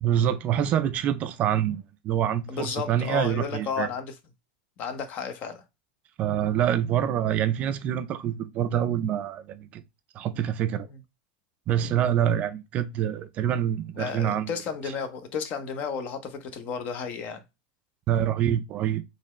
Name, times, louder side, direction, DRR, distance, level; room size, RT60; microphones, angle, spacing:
voice 1, 0.0-3.9 6.2-9.8 10.1-10.9 11.7-14.5 18.1-19.0, right 10 dB, 35° right, 0.4 m, -26 dB
voice 2, 2.5-4.1 4.8-5.6 10.9-11.0 11.7-11.9 14.0-17.4, left 6 dB, 40° left, 0.8 m, -33 dB
4.2 x 3.2 x 3.0 m
supercardioid pair, 150°, 4 cm